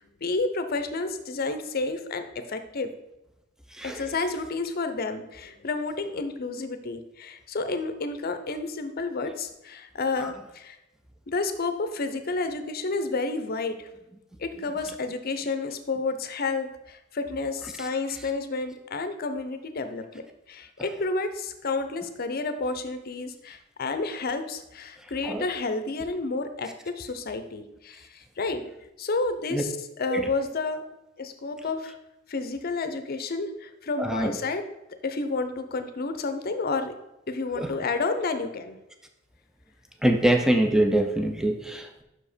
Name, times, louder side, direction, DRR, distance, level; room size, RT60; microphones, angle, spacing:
voice 1, 0.2-2.9 3.8-10.8 11.3-13.9 14.4-20.2 20.5-28.6 29.0-30.8 31.2-32.0 32.3-34.6 35.0-36.9 37.3-38.8, left 3 dB, 45° left, 8 dB, 0.6 m, -30 dB
voice 2, 3.7-4.0 10.2-10.3 17.8-17.9 25.2-25.5 29.5-29.6 30.1-30.3 34.0-34.4 37.6-37.7 40.0-42.0, right 1 dB, 5° right, 5 dB, 0.5 m, -24 dB
5.9 x 4.9 x 5.0 m, 0.92 s
head